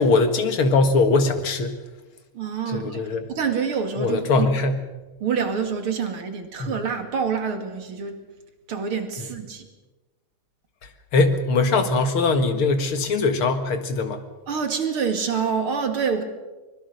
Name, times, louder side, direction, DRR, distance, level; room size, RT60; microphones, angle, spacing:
voice 1, 0.0-1.8 2.7-3.2 4.0-4.8 6.6-6.7 11.1-14.2, left 3 dB, 75° left, 8 dB, 2.7 m, -21 dB
voice 2, 2.3-3.0 3.3-4.5 5.2-8.2 8.7-9.7 14.5-16.2, right 6 dB, 80° right, 6 dB, 3.2 m, -26 dB
24.0 x 21.0 x 6.6 m, 1.2 s
omnidirectional pair, 2.4 m